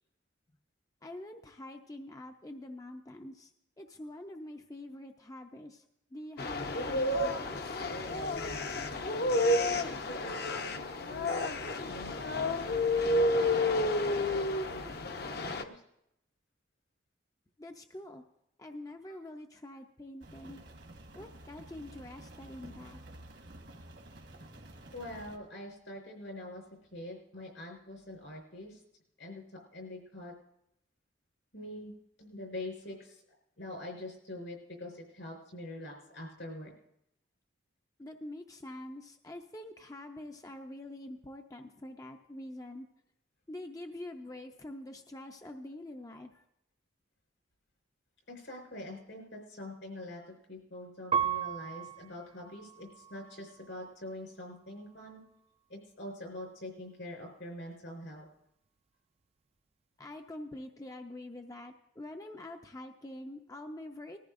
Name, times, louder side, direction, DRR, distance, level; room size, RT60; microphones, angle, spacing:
voice 1, 1.0-3.5 3.8-5.8 6.1-7.8 17.6-18.2 18.6-20.6 21.1-23.0 38.0-42.9 43.5-46.4 60.0-64.2, left 1 dB, 20° left, 4 dB, 0.5 m, -45 dB
sound 1, 6.4-15.6, left 2 dB, 55° left, 0.8 m, -30 dB
voice 2, 9.5-12.8 13.0-13.8 14.2-15.8 24.9-26.6 26.9-28.8 29.2-29.4 29.7-30.3 31.5-33.2 33.6-36.7 48.3-55.2 55.7-58.2, left 1 dB, 80° left, 2 dB, 4.5 m, -45 dB
Rain, 20.2-25.4, right 1 dB, 65° right, 1.4 m, -51 dB
Piano, 51.1-53.9 54.5-55.2, right 8 dB, 35° right, 0.4 m, -36 dB
20.0 x 14.0 x 2.5 m, 0.81 s
head